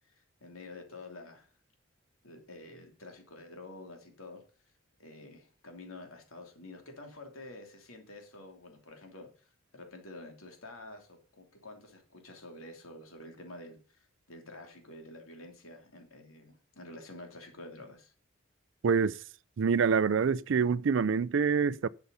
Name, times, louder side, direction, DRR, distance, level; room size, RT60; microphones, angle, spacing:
voice 1, 0.1-1.5 2.2-4.4 5.0-9.3 9.7-14.0 14.3-18.1, left 2 dB, 90° left, 3.0 m, -49 dB
voice 2, 18.8-19.2 19.6-21.9, right 6 dB, 65° right, 0.4 m, -26 dB
11.5 x 6.9 x 5.5 m
head